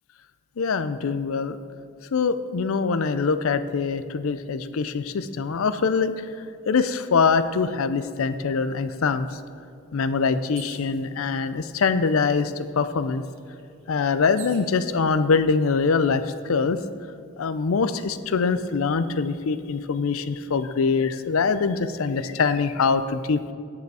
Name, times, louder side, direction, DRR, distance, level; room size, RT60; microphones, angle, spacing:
voice 1, 0.6-1.6 2.1-6.1 6.7-9.3 9.9-13.2 13.9-16.8 17.4-23.5, left 5 dB, 80° left, 12 dB, 0.5 m, -23 dB
sound 1, 10.5-11.0 11.9-12.0 12.3-14.7 15.5-16.0, right 6 dB, 65° right, 1.2 m, -46 dB
9.3 x 6.8 x 4.8 m, 2.4 s
head